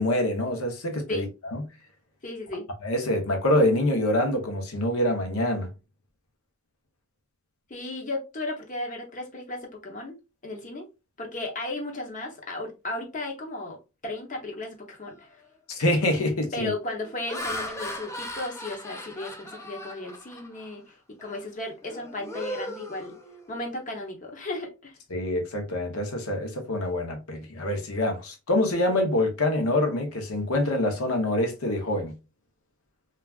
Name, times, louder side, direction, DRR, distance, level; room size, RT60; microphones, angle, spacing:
voice 1, 0.0-1.7 2.8-5.7 15.8-16.7 25.1-32.1, left 1 dB, 85° left, 0.8 m, -25 dB
voice 2, 2.2-2.7 7.7-10.2 10.4-10.9 11.2-13.8 14.0-15.3 16.5-23.1 23.5-25.0, left 2 dB, 35° left, 0.8 m, -35 dB
Laughter, 15.2-15.4 16.0-16.3 16.9-20.7 21.2-21.4 21.8-23.7, left 1 dB, 15° left, 0.4 m, -38 dB
3.3 x 2.4 x 2.3 m
head